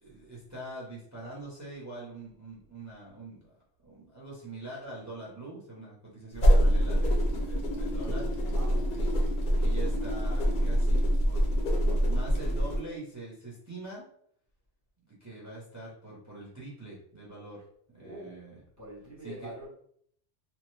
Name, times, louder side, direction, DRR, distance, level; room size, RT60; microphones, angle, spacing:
voice 1, 0.0-3.5 3.8-8.4 8.9-9.1 9.4-11.0 11.2-11.4 11.7-14.0 15.1-17.7 17.9-18.5 19.2-19.5, right 2 dB, 20° right, -5 dB, 0.7 m, -44 dB
sound 1, 6.3-12.8, equal, 50° left, 0.7 m, -25 dB
voice 2, 8.4-8.9 18.0-18.4 18.8-19.7, right 1 dB, 20° left, -5 dB, 0.7 m, -44 dB
3.0 x 2.1 x 3.2 m, 0.64 s
omnidirectional pair, 1.2 m